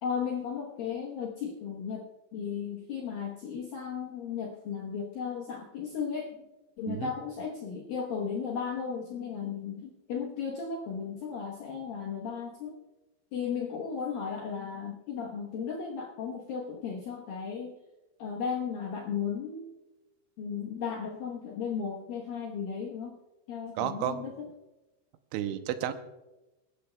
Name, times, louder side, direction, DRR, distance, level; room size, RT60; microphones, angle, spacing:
voice 1, 0.0-6.4 6.8-12.7 13.3-17.7 18.2-19.7 20.4-23.1 23.5-24.5, left 6 dB, 70° left, -2 dB, 2.3 m, -35 dB
voice 2, 23.8-24.3 25.3-25.9, right 10 dB, 85° right, 8 dB, 3.1 m, -32 dB
25.5 x 13.5 x 2.3 m, 1.1 s
omnidirectional pair, 5.5 m